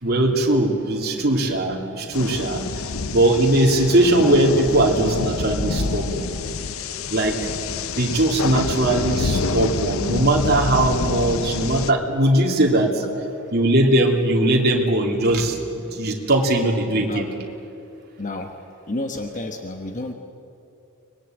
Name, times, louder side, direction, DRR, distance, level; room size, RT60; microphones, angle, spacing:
voice 1, 0.0-6.3 7.1-7.5 8.0-13.0 13.5-17.3, right 1 dB, 45° right, 0 dB, 2.9 m, -20 dB
sound 1, 2.1-11.9, left 4 dB, 65° left, 0.8 m, -27 dB
voice 2, 18.2-18.5 18.9-20.1, left 2 dB, 35° left, 5 dB, 1.2 m, -30 dB
24.5 x 20.5 x 9.0 m, 2.8 s
head